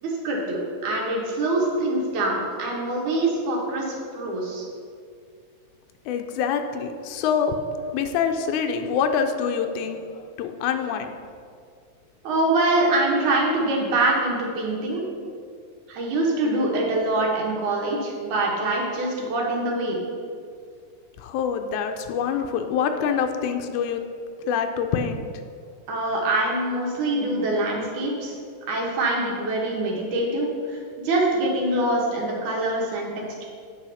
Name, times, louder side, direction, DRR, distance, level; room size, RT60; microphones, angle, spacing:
voice 1, 0.0-4.6 12.2-15.1 15.9-20.0 25.9-28.3 28.7-30.8 31.0-33.1, right 2 dB, 80° right, -2 dB, 2.9 m, -24 dB
voice 2, 6.1-7.5 7.9-10.0 10.4-11.1 21.2-24.0 24.4-25.2, left 7 dB, 85° left, 5 dB, 2.0 m, -25 dB
8.8 x 4.9 x 5.5 m, 2.2 s
omnidirectional pair, 3.4 m